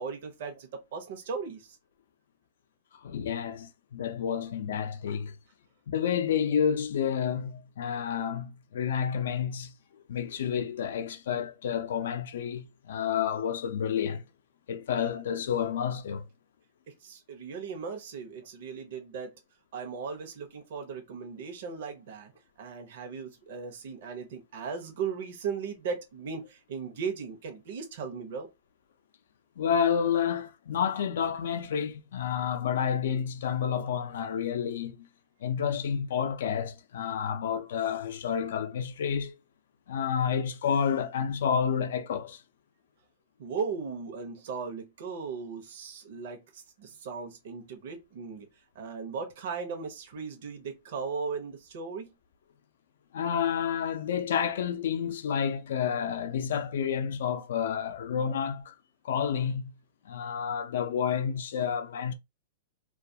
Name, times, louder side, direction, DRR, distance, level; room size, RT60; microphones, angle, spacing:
voice 1, 0.0-1.8 17.0-19.3 19.7-22.3 22.6-28.5 43.4-48.5 48.7-52.1, right 5 dB, 65° right, 0.7 m, -37 dB
voice 2, 2.9-5.4 5.9-9.7 10.1-14.2 14.7-16.3 29.6-35.1 35.4-39.4 39.9-42.4 53.1-58.8 59.0-59.7 60.0-62.1, left 8 dB, 75° left, 0.4 m, -30 dB
2.3 x 2.3 x 2.7 m
hypercardioid pair, 145°, 0 cm